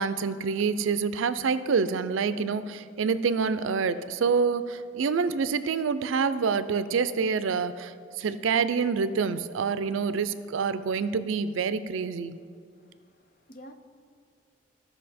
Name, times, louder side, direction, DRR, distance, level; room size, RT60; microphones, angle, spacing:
voice 1, 0.0-12.4, right 5 dB, 85° right, 0.4 m, -27 dB
voice 2, 12.7-13.7, equal, 45° left, 0.7 m, -51 dB
14.5 x 5.8 x 4.2 m
head